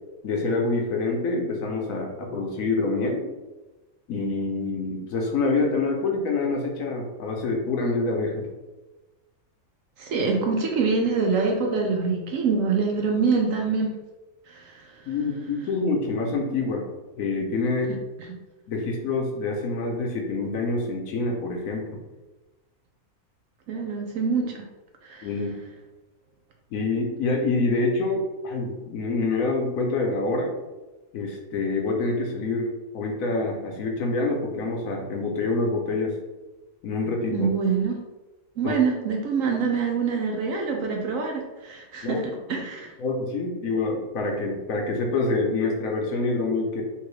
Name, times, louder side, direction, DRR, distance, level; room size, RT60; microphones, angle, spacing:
voice 1, 0.2-3.2 4.1-8.5 15.1-16.9 17.2-17.9 18.7-22.0 25.2-25.6 26.7-30.5 31.1-36.1 36.8-37.5 38.6-38.8 42.0-42.2 42.5-42.6 43.0-46.8, left 3 dB, 65° left, 1 dB, 1.0 m, -26 dB
voice 2, 10.0-14.0 14.5-15.0 23.7-24.6 25.0-25.3 37.3-38.0 38.6-42.9, right 5 dB, 70° right, 1 dB, 0.9 m, -25 dB
3.6 x 2.9 x 3.1 m, 1.1 s
omnidirectional pair, 1.7 m